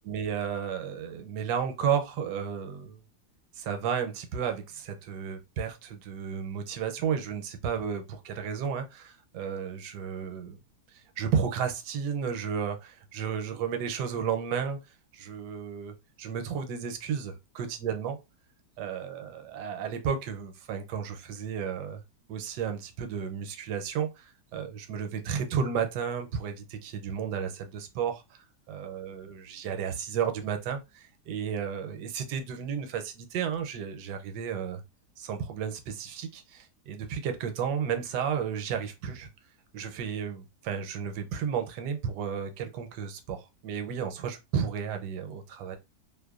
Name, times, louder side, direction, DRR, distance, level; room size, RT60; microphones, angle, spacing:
voice 1, 0.1-3.0 3.5-10.6 10.9-14.8 15.1-18.2 18.8-22.0 22.3-34.8 35.2-39.3 39.7-45.8, right 7 dB, 80° right, 1.1 m, -33 dB
2.8 x 2.1 x 2.3 m
omnidirectional pair, 1.8 m